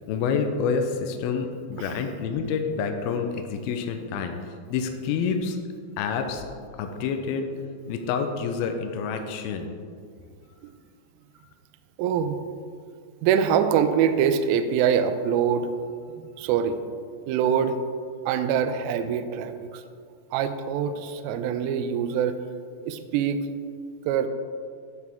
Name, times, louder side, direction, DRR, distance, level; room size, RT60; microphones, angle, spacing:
voice 1, 0.1-4.4 4.7-5.6 6.0-6.5 6.8-7.5 7.9-9.7, left 5 dB, 80° left, 5 dB, 2.3 m, -28 dB
voice 2, 12.0-12.4 13.2-15.7 16.4-16.8 17.3-17.8 18.3-19.8 20.3-22.4 22.8-23.4 24.1-24.3, right 8 dB, 85° right, 10 dB, 2.1 m, -24 dB
14.0 x 4.8 x 3.5 m, 2.1 s
omnidirectional pair, 4.8 m